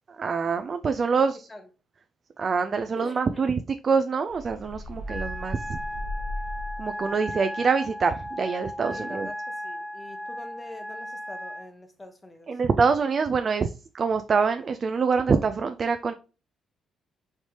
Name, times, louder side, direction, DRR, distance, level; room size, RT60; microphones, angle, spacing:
voice 1, 0.2-1.4 2.4-5.8 6.8-9.3 12.5-16.1, right 5 dB, 45° right, 0.3 m, -25 dB
voice 2, 1.1-1.7 2.9-3.5 8.9-12.6, left 2 dB, 20° left, 1.0 m, -44 dB
sound 1, 4.3-7.1, left 1 dB, 65° left, 1.0 m, -36 dB
Wind instrument woodwind instrument, 5.1-11.7, equal, ahead, 1.2 m, -36 dB
4.3 x 3.2 x 2.9 m
cardioid pair, 90°, 0 cm